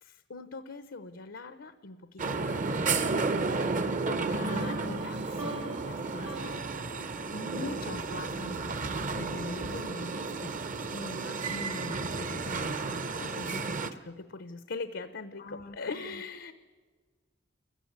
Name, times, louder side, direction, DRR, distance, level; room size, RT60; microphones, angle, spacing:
voice 1, 0.0-3.1 3.6-3.8 4.1-6.5 7.3-8.5 8.8-16.5, left 3 dB, 85° left, 11 dB, 0.8 m, -42 dB
sound 1, 2.2-13.9, right 3 dB, 45° right, 0.8 m, -32 dB
voice 2, 4.3-5.0 8.3-8.6 9.4-9.8 15.4-16.2, left 2 dB, 50° left, 12 dB, 0.6 m, -45 dB
sound 2, 4.4-8.4, right 2 dB, 80° right, 2.8 m, -43 dB
28.5 x 15.0 x 9.4 m, 1.5 s
head